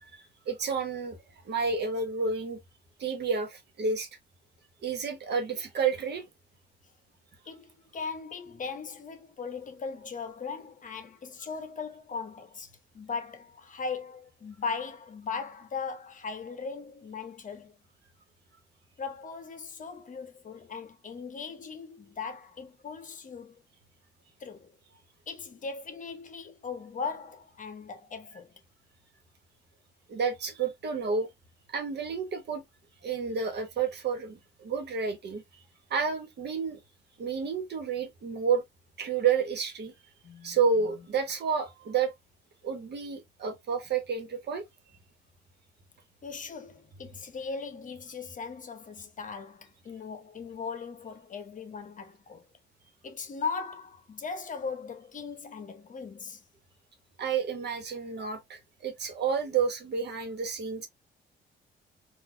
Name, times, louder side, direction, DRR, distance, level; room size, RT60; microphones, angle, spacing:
voice 1, 0.5-1.2 1.5-2.6 3.0-4.1 4.8-6.2 30.1-31.3 31.7-32.6 33.0-35.4 35.9-36.8 37.2-38.6 39.0-39.9 40.4-42.1 42.6-44.6 57.2-60.9, right 5 dB, 60° right, 1.3 m, -30 dB
voice 2, 7.5-17.7 19.0-23.6 24.4-24.7 25.3-28.5 40.2-41.1 46.2-52.4 53.0-56.4, left 5 dB, 40° left, 0.8 m, -39 dB
4.1 x 2.5 x 2.5 m
cardioid pair, 90°, 20 cm